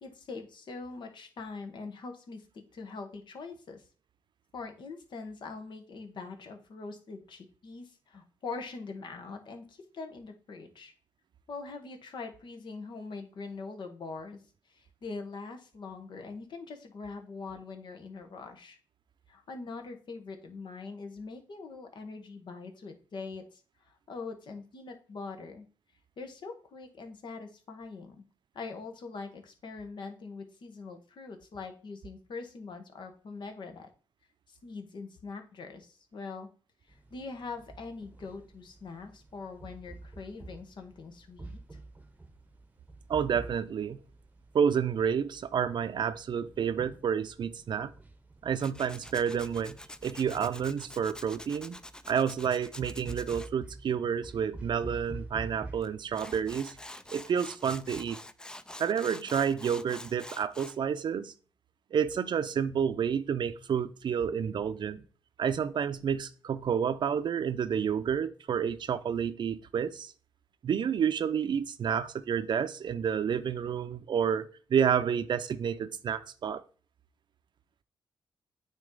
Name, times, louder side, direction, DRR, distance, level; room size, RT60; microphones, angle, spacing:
voice 1, 0.0-3.8 4.5-10.9 11.5-14.4 14.7-18.8 19.3-25.7 26.2-28.2 28.5-33.9 34.5-36.5 36.9-41.6, left 4 dB, 60° left, 5 dB, 1.2 m, -43 dB
sound 1, 36.9-56.5, right 2 dB, 15° right, 0.9 m, -48 dB
voice 2, 43.1-44.0 44.5-47.9 48.4-49.8 50.0-51.8 52.1-56.8 57.1-58.2 58.8-61.3 61.9-65.0 65.4-70.1 70.6-76.6, right 7 dB, 60° right, 13 dB, 0.6 m, -30 dB
Tools, 48.6-53.5 55.8-55.9 56.1-60.8, left 1 dB, 10° left, 0.4 m, -46 dB
8.9 x 3.0 x 3.8 m, 0.40 s
supercardioid pair, 60°, 9 cm